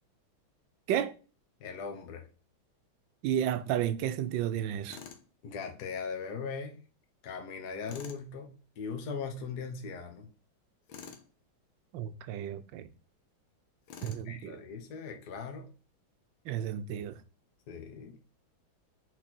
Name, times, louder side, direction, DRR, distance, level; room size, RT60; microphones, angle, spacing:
voice 1, 1.6-2.3 5.4-6.8 7.2-10.3 14.2-15.7 17.7-18.1, left 5 dB, 55° left, 1.5 m, -39 dB
voice 2, 3.2-5.0 11.9-12.9 14.0-14.6 16.4-17.2, right 10 dB, 75° right, 1.3 m, -32 dB
Tools, 4.9-5.3 7.9-8.2 10.9-11.3 13.9-14.3, left 7 dB, 80° left, 1.8 m, -47 dB
6.2 x 4.4 x 4.3 m
omnidirectional pair, 2.2 m